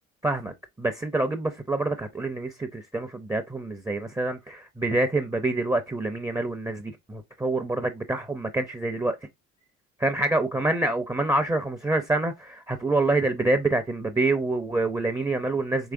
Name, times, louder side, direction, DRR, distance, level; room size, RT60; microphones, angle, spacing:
voice 1, 0.2-9.2 10.0-15.9, right 2 dB, 10° right, 0.6 m, -26 dB
4.7 x 3.1 x 2.6 m
supercardioid pair, 80°, 32 cm